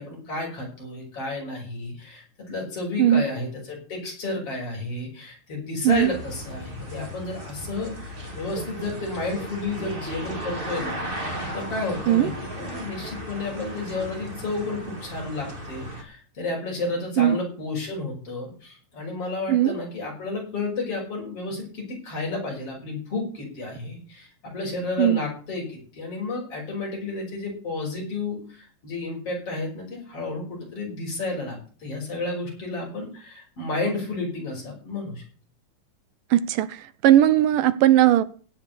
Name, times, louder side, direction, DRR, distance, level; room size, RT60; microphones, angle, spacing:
voice 1, 0.0-11.0 11.5-35.2, left 3 dB, 40° left, 6.7 m, -32 dB
sound 1, 5.9-16.0, equal, 15° right, 2.3 m, -36 dB
voice 2, 36.3-36.8 37.0-38.2, right 12 dB, 80° right, 2.4 m, -18 dB
16.5 x 5.9 x 8.2 m
omnidirectional pair, 3.8 m